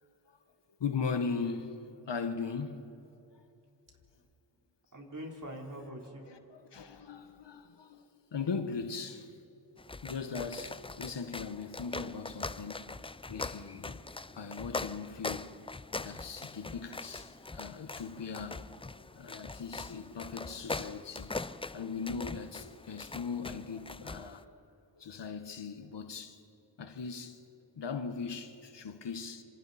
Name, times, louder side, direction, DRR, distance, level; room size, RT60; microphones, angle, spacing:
voice 1, 0.8-1.8 2.1-2.9 6.3-9.3 10.0-13.0 13.3-14.0 14.3-15.6 16.0-18.6 19.1-21.3 21.7-24.5 24.9-26.4 26.8-27.4 27.7-29.4, left 5 dB, 70° left, 1.5 m, -39 dB
voice 2, 4.9-7.0, equal, 45° right, 3.9 m, -45 dB
sound 1, 9.8-24.4, left 3 dB, 15° left, 0.4 m, -42 dB
26.5 x 26.5 x 4.3 m
cardioid pair, 75°, 44 cm